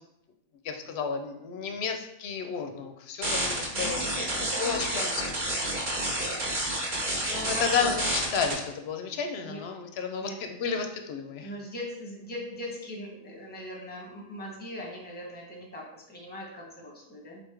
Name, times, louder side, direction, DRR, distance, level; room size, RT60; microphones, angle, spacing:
voice 1, 0.6-4.1 4.6-5.1 7.2-11.5, left 6 dB, 65° left, 5 dB, 0.7 m, -32 dB
sound 1, 3.2-8.5, right 1 dB, 40° right, 1.1 m, -29 dB
voice 2, 3.7-7.9 9.4-9.6 10.2-10.4 11.4-17.4, equal, 10° left, -1 dB, 0.7 m, -40 dB
4.0 x 3.4 x 3.3 m, 0.83 s
omnidirectional pair, 1.4 m